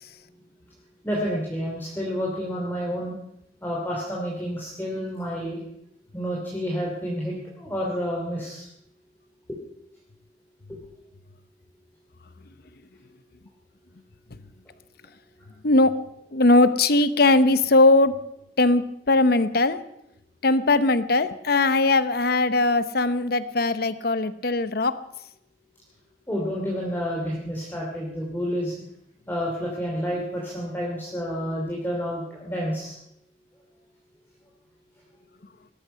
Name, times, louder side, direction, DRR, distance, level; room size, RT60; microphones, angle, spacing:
voice 1, 1.0-3.1 3.6-5.6 6.1-8.7 9.5-9.6 10.7-10.8 26.3-28.8 29.3-33.0, equal, 10° left, -4 dB, 2.8 m, -29 dB
voice 2, 15.6-15.9 16.3-18.2 18.6-19.8 20.4-24.9, left 2 dB, 55° left, 13 dB, 0.9 m, -20 dB
19.0 x 13.5 x 5.6 m, 0.77 s
head